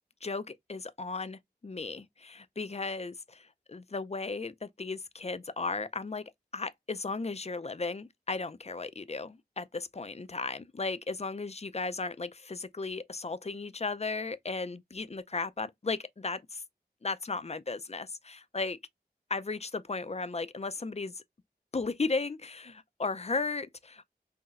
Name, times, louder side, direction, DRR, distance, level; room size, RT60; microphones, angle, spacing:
voice 1, 0.2-16.6 17.0-18.8 19.3-21.2 21.7-24.1, left 3 dB, 40° left, 0.5 m, -35 dB
5.5 x 2.2 x 2.5 m
wide cardioid pair, 45°, 17 cm